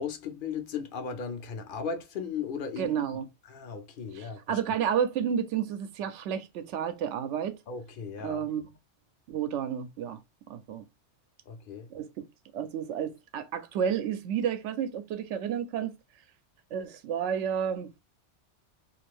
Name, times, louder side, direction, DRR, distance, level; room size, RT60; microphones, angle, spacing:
voice 1, 0.0-3.2 3.5-4.6 7.7-8.4 11.5-11.9, left 6 dB, 55° left, 0.7 m, -36 dB
voice 2, 2.8-3.2 4.1-7.6 8.2-8.7 9.3-10.2 10.5-10.8 11.9-12.1 12.5-15.9 16.7-17.9, right 8 dB, 85° right, 0.9 m, -31 dB
2.5 x 2.4 x 3.3 m
omnidirectional pair, 1.2 m